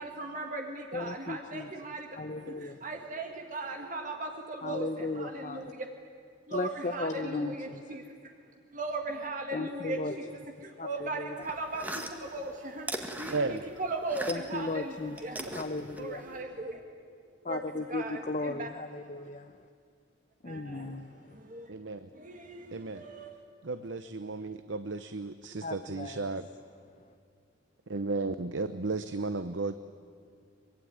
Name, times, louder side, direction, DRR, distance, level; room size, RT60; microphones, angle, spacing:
voice 1, 0.0-2.1 2.5-5.9 6.5-8.1 8.7-10.3 10.6-15.5 16.0-16.8 17.5-18.7 20.4-21.0 21.3-21.7 22.1-23.4, right 2 dB, 40° right, 3 dB, 1.8 m, -38 dB
voice 2, 0.9-1.7 2.2-2.8 4.6-5.7 6.5-7.8 9.5-10.2 10.8-11.4 14.3-15.2 15.5-16.3 17.4-19.5 20.4-21.4 25.6-26.3, left 3 dB, 40° left, 8 dB, 0.8 m, -36 dB
sound 1, 11.4-14.7 14.9-16.4, right 1 dB, 10° right, 1.7 m, -40 dB
voice 3, 13.3-13.6 15.5-15.6 21.7-22.1 22.7-23.0 23.6-26.5 27.9-29.7, right 3 dB, 70° right, 11 dB, 0.8 m, -34 dB
24.0 x 22.0 x 9.7 m, 2.2 s
head